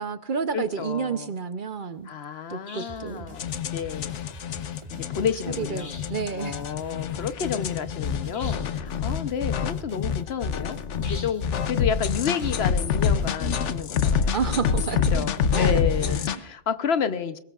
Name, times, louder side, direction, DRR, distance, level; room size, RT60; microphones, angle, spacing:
voice 1, 0.0-2.1 2.5-3.3 5.5-6.6 14.3-15.1 15.5-16.4, right 6 dB, 50° right, 11 dB, 0.8 m, -30 dB
voice 2, 0.5-1.3 2.1-4.1 4.9-5.9 6.3-14.3 15.1-17.4, left 7 dB, 65° left, 12 dB, 1.0 m, -30 dB
sound 1, 2.7-3.1 5.8-6.3 8.3-8.8 11.0-11.5, left 3 dB, 45° left, 2.0 m, -44 dB
sound 2, 2.9-16.1, right 1 dB, 25° right, 1.6 m, -45 dB
sound 3, 3.4-16.4, left 6 dB, 80° left, 1.1 m, -27 dB
22.0 x 19.0 x 2.4 m, 0.77 s
omnidirectional pair, 1.2 m